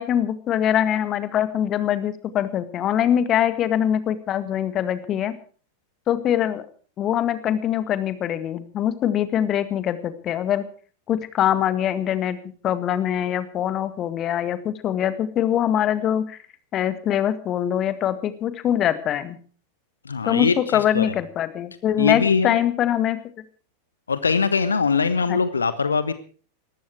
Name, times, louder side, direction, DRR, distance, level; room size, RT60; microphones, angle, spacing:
voice 1, 0.0-5.3 6.1-6.6 7.0-10.6 11.1-12.4 12.6-16.4 16.7-19.4 20.2-23.2 25.3-25.4, left 10 dB, 30° left, 12 dB, 1.9 m, -23 dB
voice 2, 20.0-21.2 22.0-22.6 24.1-26.1, left 5 dB, 75° left, 13 dB, 1.2 m, -22 dB
19.5 x 15.0 x 4.8 m, 0.42 s
figure-of-eight pair, 90°, 0 cm